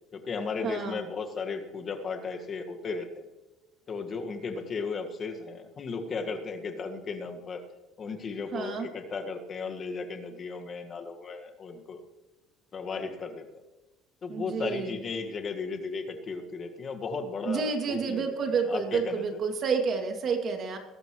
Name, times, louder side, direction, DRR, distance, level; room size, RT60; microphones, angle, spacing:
voice 1, 0.1-3.3 3.9-7.6 8.0-12.0 12.7-13.5 14.2-18.2 18.7-19.2, left 4 dB, 40° left, 4 dB, 1.8 m, -35 dB
voice 2, 0.6-1.0 8.5-8.9 14.3-15.0 17.4-20.8, right 5 dB, 50° right, 4 dB, 2.6 m, -29 dB
21.0 x 12.0 x 3.2 m, 1.1 s
supercardioid pair, 85°, 0 cm